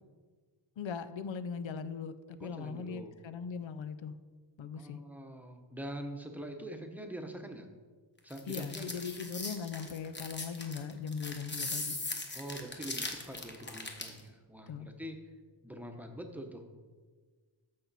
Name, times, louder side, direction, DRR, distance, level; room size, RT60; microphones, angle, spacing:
voice 1, 0.8-4.1 4.6-5.0 8.5-12.0 14.7-14.9, left 6 dB, 85° left, 12 dB, 0.7 m, -39 dB
voice 2, 2.4-3.1 4.8-7.7 8.2-9.0 12.3-15.2 15.6-16.7, right 1 dB, 5° right, 4 dB, 0.9 m, -44 dB
sound 1, 8.3-14.2, left 2 dB, 25° left, 1.1 m, -39 dB
14.0 x 5.7 x 4.2 m, 1.5 s
wide cardioid pair, 155°, 45 cm